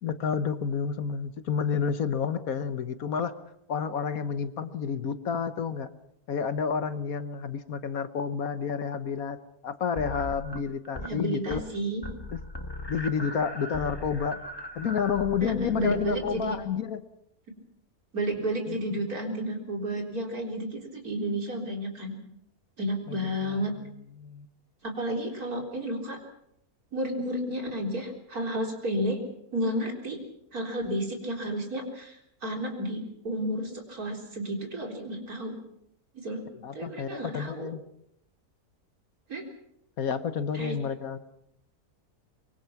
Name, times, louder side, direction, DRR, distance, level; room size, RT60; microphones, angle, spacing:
voice 1, 0.0-3.3 3.7-5.9 6.3-9.4 9.6-11.6 12.3-12.4 12.9-14.4 14.7-17.0 18.7-18.8 23.1-23.7 24.2-24.5 36.6-37.8 40.0-41.2, left 6 dB, 65° left, 11 dB, 1.5 m, -30 dB
sound 1, 10.0-11.2 11.4-11.8 12.0-16.8, left 1 dB, 15° left, 1.5 m, -39 dB
voice 2, 11.0-12.0 15.4-16.6 18.1-22.2 22.8-23.7 24.8-26.2 26.9-29.2 29.5-30.2 30.5-35.5 36.1-36.4 36.7-37.7 39.3-39.4 40.5-40.8, right 1 dB, 70° right, 2 dB, 4.4 m, -32 dB
24.5 x 23.0 x 5.9 m, 0.76 s
omnidirectional pair, 1.6 m